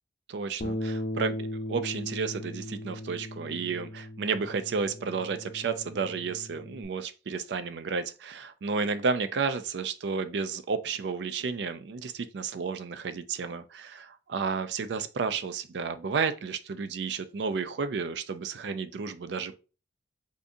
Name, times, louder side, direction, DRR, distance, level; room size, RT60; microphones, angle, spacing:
voice 1, 0.3-19.6, right 5 dB, 70° right, 0.4 m, -32 dB
Bass guitar, 0.6-6.9, left 1 dB, 45° left, 0.5 m, -37 dB
3.6 x 2.6 x 2.6 m
head